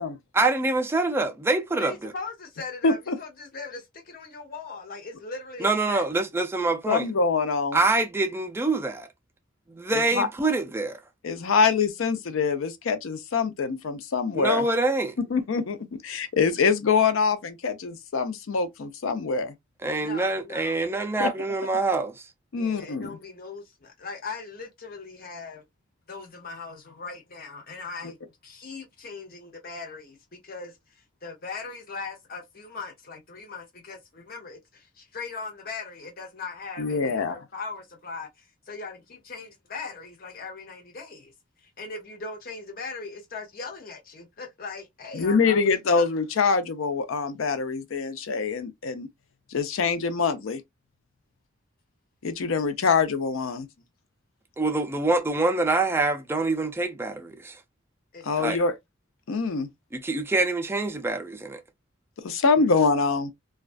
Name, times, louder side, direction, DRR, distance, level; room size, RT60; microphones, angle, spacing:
voice 1, 0.3-2.1 5.6-7.1 7.7-9.1 9.7-11.0 14.3-15.2 19.8-22.3 54.6-57.6 58.4-58.6 59.9-61.6, right 3 dB, 10° right, 0.3 m, -25 dB
voice 2, 1.8-6.1 20.0-20.8 22.5-25.6 26.1-28.2 28.4-41.3 41.6-45.7 45.9-46.1 58.1-58.5 62.5-62.7, left 4 dB, 50° left, 0.8 m, -39 dB
voice 3, 2.8-3.2 6.9-7.8 9.9-10.3 11.2-14.6 15.3-15.8 16.0-19.5 21.2-21.3 22.5-23.2 36.8-37.3 45.1-49.1 49.5-50.6 52.2-53.7 58.3-58.7 59.3-59.7 62.2-63.3, left 5 dB, 80° left, 0.5 m, -24 dB
2.4 x 2.2 x 2.3 m
head